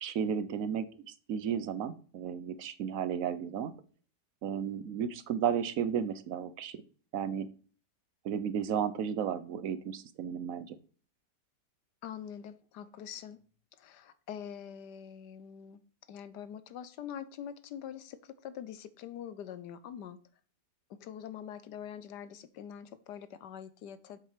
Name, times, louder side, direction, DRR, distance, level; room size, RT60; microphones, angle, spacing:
voice 1, 0.0-3.7 4.4-6.8 7.1-7.5 8.2-10.8, right 8 dB, 60° right, 14 dB, 1.0 m, -33 dB
voice 2, 12.0-13.4 13.8-15.8 16.1-20.2 20.9-24.2, left 9 dB, 80° left, 14 dB, 1.4 m, -44 dB
7.6 x 7.3 x 5.0 m, 0.41 s
omnidirectional pair, 1.8 m